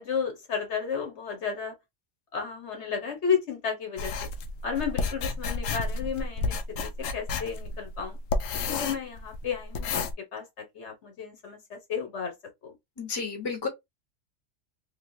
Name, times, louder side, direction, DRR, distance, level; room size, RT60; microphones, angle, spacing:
voice 1, 0.0-1.7 2.3-4.1 4.6-6.6 7.1-8.2 8.7-10.0 10.3-12.3 12.6-12.7, left 6 dB, 65° left, 1.2 m, -32 dB
sound 1, 4.0-10.1, left 4 dB, 80° left, 1.0 m, -31 dB
voice 2, 13.0-13.7, left 5 dB, 20° left, 0.9 m, -31 dB
3.1 x 2.8 x 2.5 m
omnidirectional pair, 1.3 m